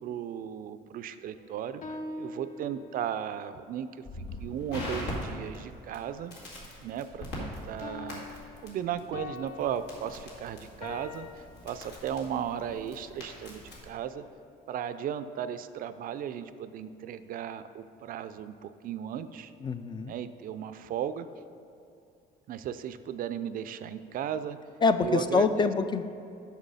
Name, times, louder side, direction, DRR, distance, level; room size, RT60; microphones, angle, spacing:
voice 1, 0.0-4.0 4.4-6.3 6.8-8.2 8.6-14.2 14.7-19.5 20.0-21.3 22.5-24.6 25.0-25.7, right 9 dB, 55° right, 12 dB, 0.4 m, -36 dB
sound 1, 1.4-3.2 7.8-11.3, left 3 dB, 55° left, 0.7 m, -43 dB
Crackle, 4.0-13.9, left 1 dB, 80° left, 2.1 m, -42 dB
voice 2, 19.6-20.1 24.8-26.0, left 4 dB, 25° left, 10 dB, 0.4 m, -25 dB
7.3 x 6.1 x 5.4 m, 2.6 s
cardioid pair, 110°, 17 cm